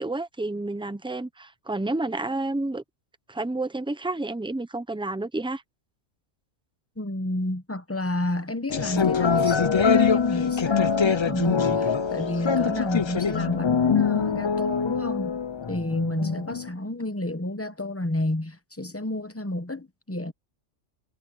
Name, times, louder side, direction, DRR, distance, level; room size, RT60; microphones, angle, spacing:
voice 1, 0.0-2.8 3.3-5.6, right 2 dB, 5° right, 0.6 m, -30 dB
voice 2, 7.0-15.4 15.7-20.3, left 1 dB, 15° left, 0.9 m, -30 dB
sound 1, 8.7-16.7, left 6 dB, 50° left, 0.3 m, -23 dB
omnidirectional pair, 1.2 m